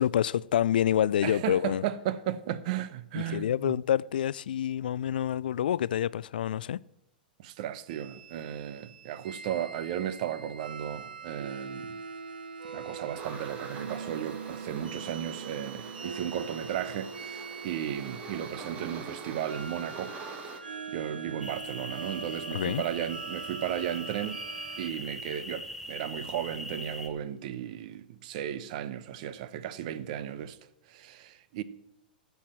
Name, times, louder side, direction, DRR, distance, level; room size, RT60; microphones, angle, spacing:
voice 1, 0.0-1.8 3.1-6.8 22.5-22.8, left 10 dB, 75° left, 0.3 m, -27 dB
voice 2, 1.2-3.8 7.4-12.0 12.7-20.1 20.9-24.4 24.8-30.6 30.9-31.6, right 10 dB, 55° right, 0.8 m, -35 dB
sound 1, 7.9-24.9, right 5 dB, 85° right, 0.8 m, -42 dB
sound 2, 13.2-20.6, right 4 dB, 30° right, 1.8 m, -45 dB
sound 3, 21.4-27.1, equal, 5° right, 1.5 m, -41 dB
13.0 x 5.8 x 7.7 m
hypercardioid pair, 110°, 5 cm